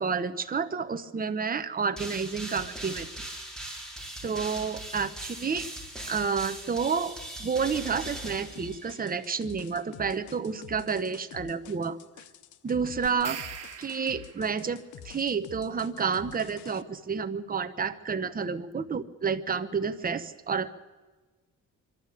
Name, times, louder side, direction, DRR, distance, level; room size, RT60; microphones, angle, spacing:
voice 1, 0.0-3.3 4.2-5.7 6.1-12.0 12.6-13.4 13.8-20.7, right 5 dB, 30° right, 9 dB, 1.2 m, -30 dB
sound 1, 2.0-9.2, right 1 dB, ahead, 4.7 m, -40 dB
sound 2, 8.5-16.8, left 10 dB, 75° left, 0.9 m, -48 dB
sound 3, 13.1-14.6, right 9 dB, 55° right, 1.7 m, -41 dB
24.5 x 12.5 x 8.5 m, 1.3 s
cardioid pair, 90°, 30 cm